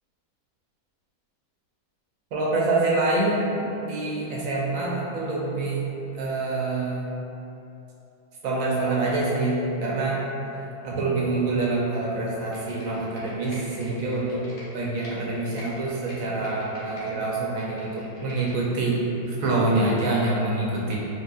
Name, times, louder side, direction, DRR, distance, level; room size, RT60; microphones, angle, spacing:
voice 1, 2.3-5.9 6.1-7.1 8.4-10.2 10.8-14.4 14.7-21.0, right 2 dB, 70° right, -4 dB, 0.9 m, -26 dB
Computer keyboard, 12.4-15.1 15.5-17.1 17.5-18.9 19.3-19.4, left 1 dB, 65° left, 1.2 m, -46 dB
4.5 x 2.5 x 2.3 m, 2.9 s
omnidirectional pair, 1.7 m